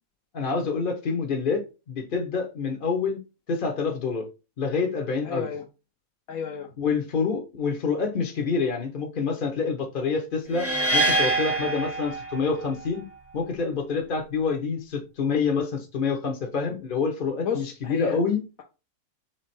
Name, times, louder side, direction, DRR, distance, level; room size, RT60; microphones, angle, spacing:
voice 1, 0.3-3.2 3.5-4.3 4.6-5.5 6.8-13.0 13.3-18.4, left 5 dB, 45° left, 0.8 m, -27 dB
voice 2, 5.2-5.6 6.3-6.7 17.4-18.2, left 7 dB, 75° left, 1.1 m, -31 dB
sound 1, 10.5-12.7, right 2 dB, 15° right, 0.6 m, -25 dB
3.5 x 3.3 x 4.2 m
omnidirectional pair, 1.5 m